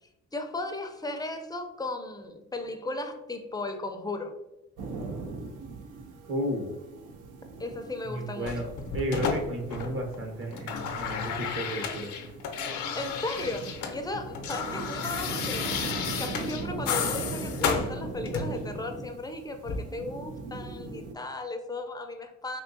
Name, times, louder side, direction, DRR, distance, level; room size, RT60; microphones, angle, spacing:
voice 1, 0.3-4.3 7.6-8.7 13.0-22.6, left 2 dB, 15° left, 5 dB, 0.4 m, -36 dB
sound 1, 4.8-21.1, right 3 dB, 90° right, 0.5 m, -40 dB
voice 2, 6.3-6.7 8.0-8.6 8.9-12.1, equal, 45° right, 1 dB, 0.9 m, -33 dB
sound 2, 8.5-10.2 10.4-14.0 14.2-18.7 19.6-19.8, left 6 dB, 85° left, 0.6 m, -33 dB
3.6 x 2.7 x 2.6 m, 0.94 s
cardioid pair, 90°, 30 cm